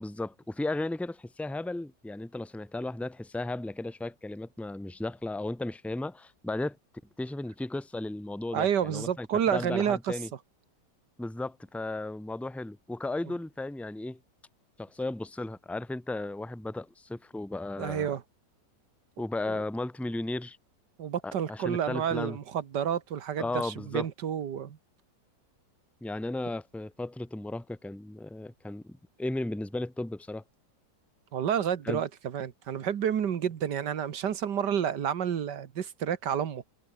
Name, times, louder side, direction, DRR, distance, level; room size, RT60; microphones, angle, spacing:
voice 1, 0.0-6.8 7.2-10.3 11.2-14.2 14.8-18.1 19.2-20.6 21.2-22.4 23.4-24.1 26.0-30.4 31.8-32.0, left 2 dB, ahead, 0.4 m, -35 dB
voice 2, 8.5-10.1 17.8-18.2 19.5-19.6 21.0-24.8 31.3-36.6, right 9 dB, 75° right, 1.9 m, -30 dB
omnidirectional pair, 1.9 m